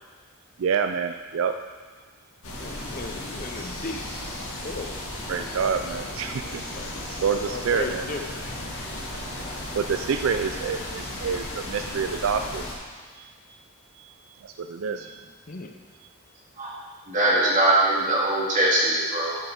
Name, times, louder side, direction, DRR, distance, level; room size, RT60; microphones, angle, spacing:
voice 1, 0.6-1.6 5.3-6.6 7.1-8.1 9.7-12.6 13.2-13.3 14.4-15.2, right 6 dB, 70° right, 8 dB, 0.4 m, -27 dB
sound 1, 2.4-12.8, left 1 dB, 90° left, 2.0 m, -35 dB
voice 2, 2.6-4.0 4.6-4.9 6.7-7.1 7.5-8.3 14.9-15.1 15.5-15.7, left 3 dB, 40° left, 5 dB, 0.6 m, -36 dB
voice 3, 17.1-19.4, right 1 dB, 35° right, -6 dB, 2.5 m, -21 dB
11.0 x 6.3 x 4.8 m, 1.5 s
head